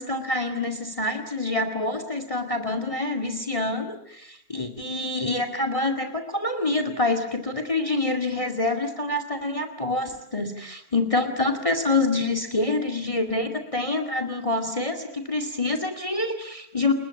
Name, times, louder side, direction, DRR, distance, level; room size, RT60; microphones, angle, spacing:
voice 1, 0.0-16.9, left 2 dB, 20° left, 8 dB, 2.3 m, -26 dB
29.5 x 21.5 x 8.5 m, 0.70 s
omnidirectional pair, 1.6 m